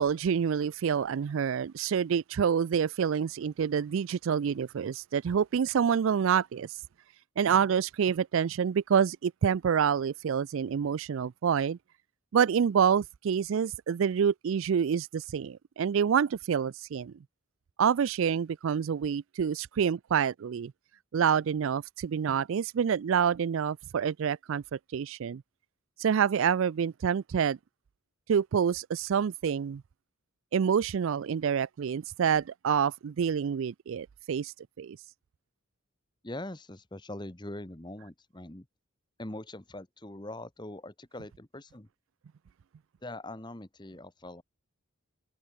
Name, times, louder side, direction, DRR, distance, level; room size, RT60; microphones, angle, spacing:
voice 1, 0.0-6.8 7.4-11.8 12.3-17.1 17.8-20.7 21.1-25.4 26.0-27.6 28.3-29.8 30.5-35.0, right 7 dB, 65° right, 0.3 m, -27 dB
voice 2, 36.2-38.7 39.2-41.9 43.0-44.4, left 1 dB, 20° left, 1.2 m, -42 dB
open air
head